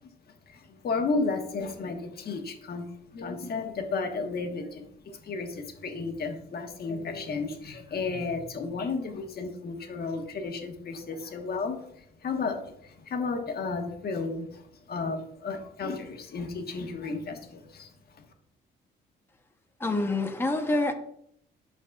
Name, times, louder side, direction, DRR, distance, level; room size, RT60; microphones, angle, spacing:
voice 1, 0.5-2.9 3.1-18.2, left 4 dB, 50° left, 4 dB, 1.3 m, -33 dB
voice 2, 19.8-20.9, left 2 dB, 10° left, 5 dB, 0.8 m, -26 dB
12.0 x 4.1 x 2.4 m, 0.69 s
cardioid pair, 90°, 20 cm